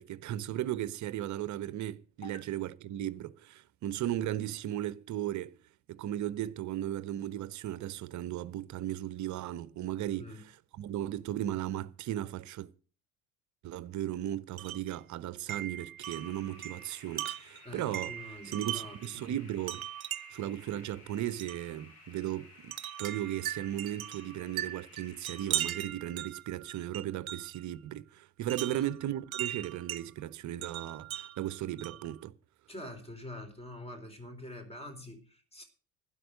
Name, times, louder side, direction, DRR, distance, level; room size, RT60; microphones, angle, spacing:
voice 1, 0.0-5.5 5.9-10.3 10.7-12.7 13.6-18.1 18.4-19.8 20.3-22.7 23.0-32.3, right 12 dB, 45° right, 0.9 m, -36 dB
voice 2, 10.1-10.4 17.6-19.3 28.6-28.8 32.7-35.6, left 1 dB, 15° left, 3.8 m, -45 dB
Wind chime, 14.6-14.9 15.5-19.1 19.7-20.5 21.4-21.6 22.7-27.6 28.5-30.0 30.6-32.1, right 11 dB, 80° right, 0.7 m, -39 dB
sound 1, 16.0-25.8, left 2 dB, 85° left, 6.7 m, -56 dB
12.5 x 10.0 x 6.4 m
figure-of-eight pair, 60°, 42 cm